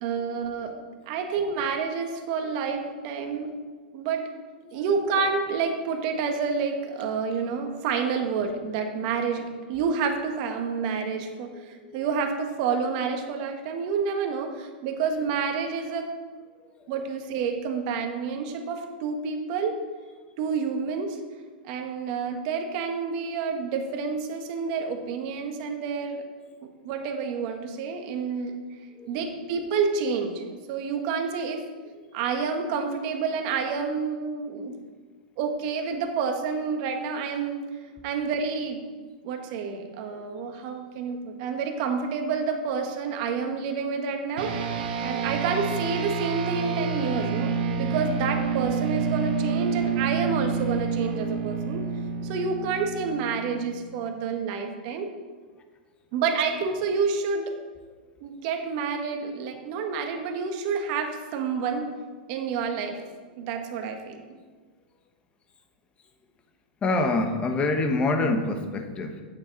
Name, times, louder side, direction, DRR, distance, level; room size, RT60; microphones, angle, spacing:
voice 1, 0.0-0.8 1.1-3.5 3.9-4.3 4.7-16.1 16.9-19.8 20.4-21.2 21.6-26.2 26.6-28.6 29.1-30.4 30.7-31.6 32.1-34.8 35.4-37.6 38.0-38.8 39.2-44.5 45.0-51.8 52.2-55.1 56.1-57.5 58.2-61.9 62.3-63.0 63.4-64.2, right 5 dB, 50° right, 4 dB, 1.4 m, -29 dB
voice 2, 11.5-12.0 16.8-16.9 28.9-29.2 32.0-32.1 40.1-40.2 41.1-41.2 63.4-63.5 66.8-69.2, left 2 dB, 20° left, 6 dB, 1.1 m, -27 dB
sound 1, 44.4-54.1, right 5 dB, 70° right, 1.3 m, -29 dB
8.8 x 8.6 x 4.0 m, 1.4 s
hypercardioid pair, 135°, 5 cm